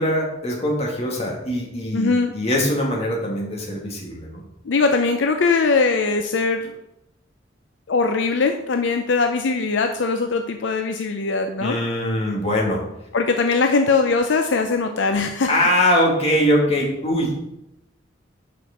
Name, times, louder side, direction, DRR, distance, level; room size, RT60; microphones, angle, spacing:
voice 1, 0.0-4.4 11.6-12.8 15.5-17.4, equal, 35° left, -2 dB, 1.9 m, -22 dB
voice 2, 1.9-2.3 4.6-6.7 7.9-11.8 13.1-15.5, left 4 dB, 70° left, 6 dB, 0.5 m, -21 dB
5.9 x 5.1 x 5.8 m, 0.85 s
head